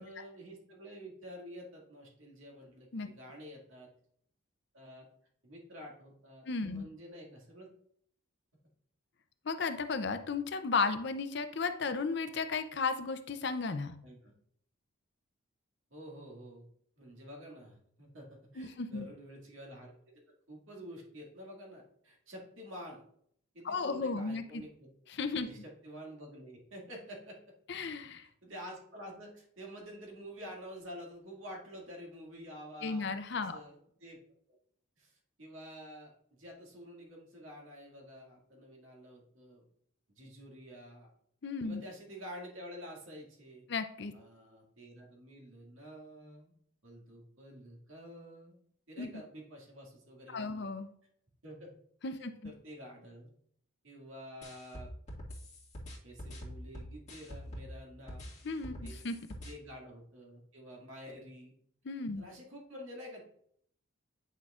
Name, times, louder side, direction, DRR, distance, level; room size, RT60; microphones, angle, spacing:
voice 1, 0.0-3.9 4.7-5.1 5.4-7.7 14.0-14.3 15.9-16.7 17.0-20.1 20.5-23.0 23.5-24.9 25.4-27.4 28.4-34.2 35.0-36.1 36.4-39.6 40.1-41.1 41.6-43.7 44.1-46.5 46.8-48.6 48.9-50.7 51.4-51.7 52.2-53.3 53.8-54.9 56.0-58.3 58.8-59.0 59.4-61.5 62.1-63.3, equal, 70° right, -1 dB, 2.1 m, -49 dB
voice 2, 6.4-6.9 9.4-13.9 18.6-19.1 23.6-24.6 25.1-25.5 27.7-28.3 32.8-33.6 41.4-41.8 43.7-44.1 49.0-49.1 50.3-50.9 52.0-52.5 58.4-59.2 61.8-62.2, left 4 dB, 55° left, 9 dB, 0.5 m, -34 dB
sound 1, 54.4-57.7 58.1-59.5, equal, 30° left, 1.6 m, -45 dB
9.0 x 6.4 x 2.4 m, 0.67 s
head